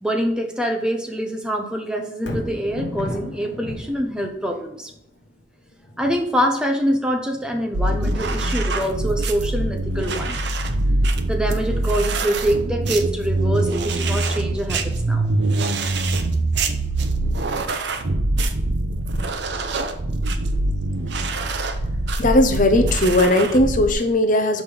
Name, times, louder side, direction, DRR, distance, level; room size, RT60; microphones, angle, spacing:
voice 1, 0.0-4.9 6.0-10.4 11.3-15.3, equal, 5° right, 3 dB, 0.8 m, -25 dB
Thunder, 2.1-16.3 16.8-16.9, left 1 dB, 60° left, 1.7 m, -39 dB
sound 1, 7.7-23.9, right 2 dB, 60° right, 0.7 m, -23 dB
voice 2, 22.2-24.6, left 1 dB, 40° left, 7 dB, 0.6 m, -17 dB
6.0 x 5.2 x 5.4 m, 0.82 s
head